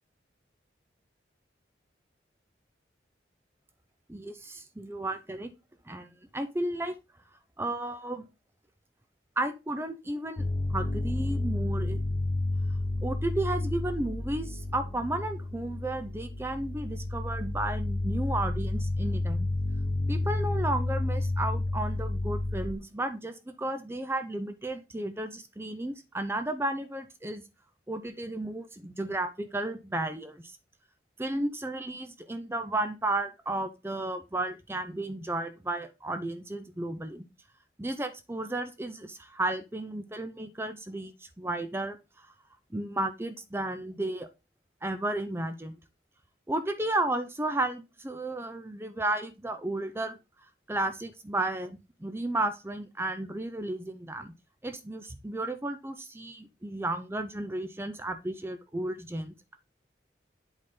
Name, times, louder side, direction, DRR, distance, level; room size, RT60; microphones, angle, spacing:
voice 1, 4.1-5.5 5.9-7.0 7.6-8.2 9.4-10.4 10.7-12.0 13.0-19.5 20.1-27.4 27.9-30.6 31.2-37.2 37.8-42.3 42.7-44.3 44.8-45.8 46.5-50.2 50.7-54.3 54.6-59.5, right 2 dB, 15° right, 9 dB, 0.5 m, -33 dB
sound 1, 10.4-22.7, left 2 dB, 35° left, 0.9 m, -31 dB
7.9 x 4.2 x 3.7 m, 0.27 s
head